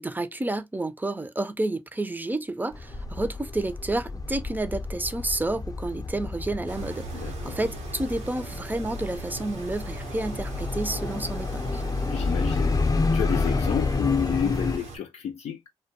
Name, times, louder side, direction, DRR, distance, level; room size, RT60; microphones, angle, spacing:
voice 1, 0.0-11.8, right 2 dB, 15° right, 0.5 m, -30 dB
sound 1, 2.7-14.8, left 3 dB, 35° left, 0.6 m, -29 dB
sound 2, 6.7-15.0, right 5 dB, 85° right, 0.8 m, -41 dB
voice 2, 7.1-7.6 12.1-12.8 13.1-15.7, left 8 dB, 80° left, 0.4 m, -30 dB
2.2 x 2.2 x 2.8 m
supercardioid pair, 50°, 11 cm